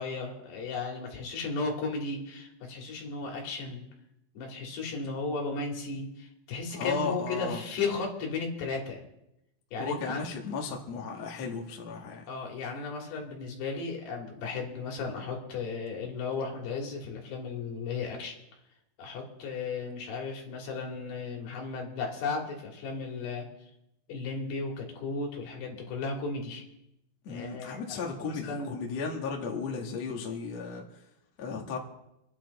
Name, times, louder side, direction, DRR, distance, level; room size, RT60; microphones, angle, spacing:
voice 1, 0.0-3.8 4.3-9.0 9.7-10.2 12.3-18.3 19.0-23.5 24.1-26.6 27.3-27.8 28.3-28.8, left 4 dB, 65° left, 0 dB, 4.5 m, -35 dB
voice 2, 6.7-7.6 9.8-12.2 27.2-31.0 31.4-31.8, left 5 dB, 50° left, 0 dB, 2.3 m, -35 dB
26.5 x 10.5 x 4.2 m, 0.85 s
omnidirectional pair, 5.4 m